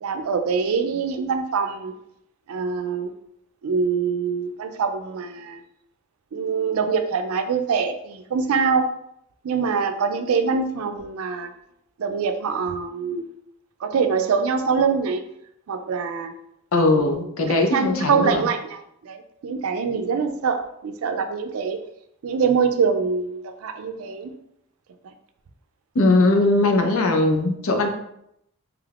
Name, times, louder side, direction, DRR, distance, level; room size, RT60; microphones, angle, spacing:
voice 1, 0.0-1.9 2.5-3.1 3.6-5.6 6.3-8.8 9.4-11.5 12.0-13.3 13.8-15.2 15.7-16.3 16.9-17.2 17.5-19.2 19.4-21.8 22.2-24.3 27.0-27.1, right 5 dB, 80° right, 8 dB, 0.4 m, -24 dB
voice 2, 16.7-18.5 25.9-27.9, left 2 dB, 75° left, 4 dB, 0.5 m, -19 dB
3.4 x 3.2 x 2.4 m, 0.77 s
head